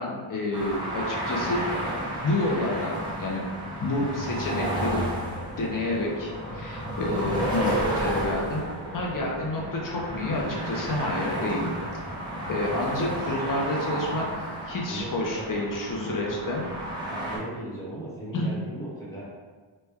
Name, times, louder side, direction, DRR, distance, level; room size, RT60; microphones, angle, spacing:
voice 1, 0.0-2.0 2.2-3.5 3.8-5.1 5.6-8.6 8.9-11.7 12.5-14.3 14.6-16.6 18.3-18.5, left 2 dB, 40° left, -1 dB, 0.5 m, -29 dB
sound 1, 0.5-17.4, right 1 dB, 10° right, 0.6 m, -32 dB
voice 2, 12.8-13.6 14.9-15.5 15.9-16.6 17.2-19.2, right 1 dB, 5° left, -9 dB, 1.0 m, -38 dB
3.1 x 2.2 x 3.3 m, 1.4 s
wide cardioid pair, 140°, 50 cm